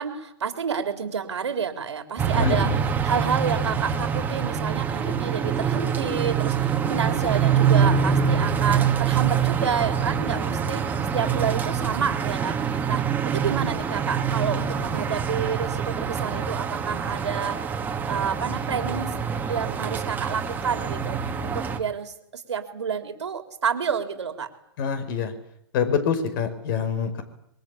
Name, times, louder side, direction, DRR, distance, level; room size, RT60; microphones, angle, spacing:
voice 1, 0.0-2.7 3.0-17.6 18.1-19.2 19.5-24.5, right 6 dB, 90° right, 6 dB, 3.8 m, -29 dB
sound 1, 2.2-21.8, right 7 dB, 10° right, 2.5 m, -25 dB
voice 2, 2.3-2.8 24.8-25.3 25.7-27.2, left 6 dB, 50° left, 10 dB, 5.6 m, -25 dB
25.5 x 22.5 x 8.7 m, 0.74 s
hypercardioid pair, 135°, 14 cm